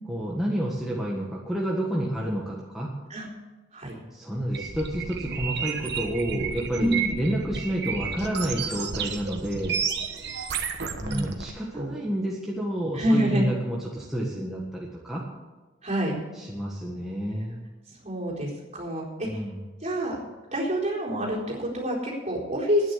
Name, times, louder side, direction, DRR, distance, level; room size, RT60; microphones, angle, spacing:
voice 1, 0.1-2.9 4.1-9.8 11.0-15.2 16.3-17.6 19.2-19.6, right 1 dB, ahead, -4 dB, 1.5 m, -29 dB
sound 1, 4.5-11.5, right 6 dB, 60° right, 1.3 m, -32 dB
voice 2, 12.9-13.5 15.8-16.2 18.0-19.4 19.8-20.2 20.5-22.9, equal, 35° right, -3 dB, 4.2 m, -27 dB
11.5 x 9.7 x 8.2 m, 1.2 s
head